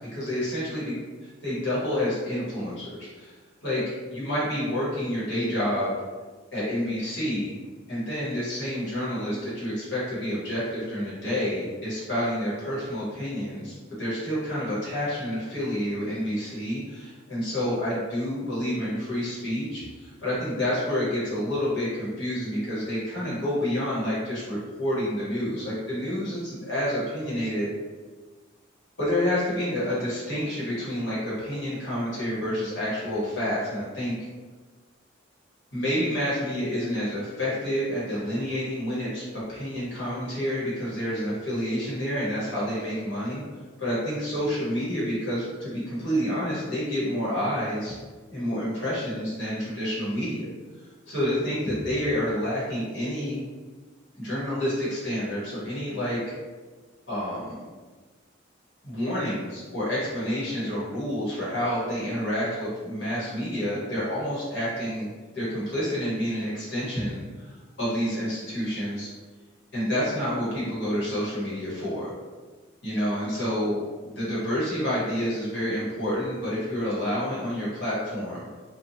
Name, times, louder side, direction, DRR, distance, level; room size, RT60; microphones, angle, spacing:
voice 1, 0.1-3.3 3.6-3.8 4.1-5.9 6.5-7.5 7.9-27.7 29.0-34.1 35.7-39.2 39.5-43.4 43.8-48.0 48.3-50.5 51.1-53.4 54.1-56.2 57.1-57.6 58.8-67.5 67.8-69.1 69.7-72.1 72.8-78.5, equal, 70° left, -8 dB, 1.2 m, -29 dB
2.6 x 2.4 x 2.8 m, 1.3 s
head